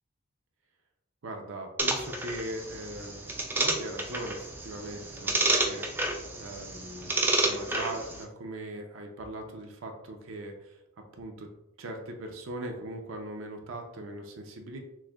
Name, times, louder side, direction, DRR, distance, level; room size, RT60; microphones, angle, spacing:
voice 1, 1.2-6.1 6.4-10.8 11.1-11.5 11.8-14.8, right 1 dB, 70° right, 3 dB, 0.5 m, -40 dB
sound 1, 1.8-8.2, right 2 dB, 10° right, 0.3 m, -30 dB
6.1 x 2.1 x 2.3 m, 0.88 s
head